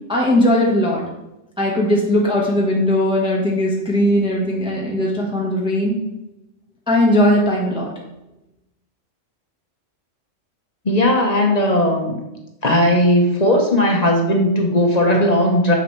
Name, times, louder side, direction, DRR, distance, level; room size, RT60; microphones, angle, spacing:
voice 1, 0.1-1.0 1.6-5.9 6.9-7.9, left 1 dB, 5° right, -3 dB, 1.2 m, -18 dB
voice 2, 10.8-12.2 12.6-15.7, left 1 dB, 35° left, 1 dB, 0.9 m, -17 dB
7.0 x 6.0 x 3.2 m, 0.93 s
omnidirectional pair, 1.3 m